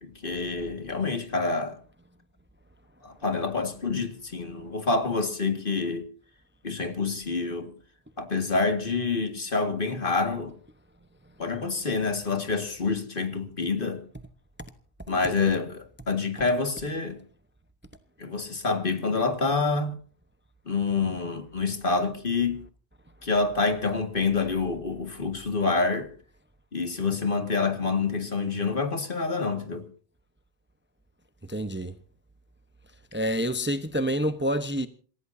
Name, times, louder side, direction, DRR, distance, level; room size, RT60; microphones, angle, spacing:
voice 1, 0.0-1.8 3.0-6.0 6.6-7.7 8.2-10.5 11.4-14.0 15.1-17.2 18.2-20.0 20.7-22.6 23.2-26.1 26.7-29.9, left 4 dB, 55° left, 2.1 m, -27 dB
voice 2, 31.4-32.0 33.1-34.9, equal, 10° right, 0.8 m, -28 dB
27.5 x 16.0 x 2.7 m
omnidirectional pair, 1.1 m